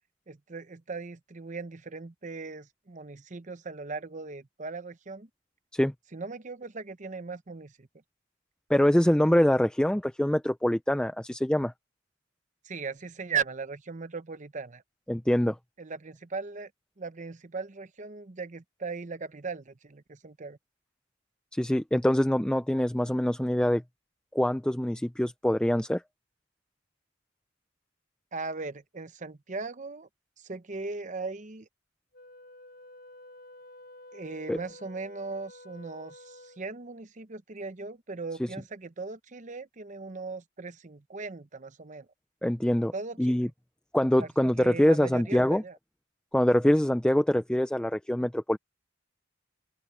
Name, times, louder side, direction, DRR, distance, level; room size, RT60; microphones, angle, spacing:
voice 1, 0.3-5.3 6.1-7.9 12.6-14.8 15.8-16.7 17.0-20.6 28.3-30.1 30.4-31.7 34.1-42.1 42.9-43.4 44.2-45.8, right 4 dB, 40° right, 0.8 m, -38 dB
voice 2, 8.7-11.7 15.1-15.6 21.5-23.8 24.3-26.0 34.5-34.6 42.4-42.9 43.2-43.5 43.9-45.6 46.3-48.6, equal, 5° left, 0.4 m, -24 dB
Wind instrument woodwind instrument, 32.1-36.8, left 1 dB, 50° left, 7.2 m, -50 dB
open air
head